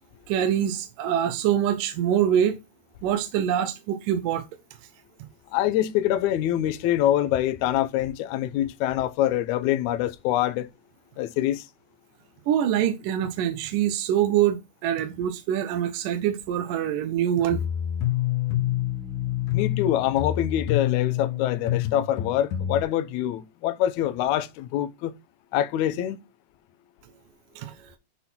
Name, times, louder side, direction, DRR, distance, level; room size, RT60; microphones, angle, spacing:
voice 1, 0.3-2.6 3.0-4.4 12.5-17.6 27.6-27.9, right 10 dB, 75° right, 2.3 m, -24 dB
voice 2, 5.5-10.7 11.2-11.7 19.5-25.1 25.5-26.2, left 12 dB, 85° left, 1.6 m, -25 dB
sound 1, 17.5-22.8, left 12 dB, 65° left, 2.3 m, -27 dB
10.0 x 3.9 x 4.3 m
omnidirectional pair, 4.4 m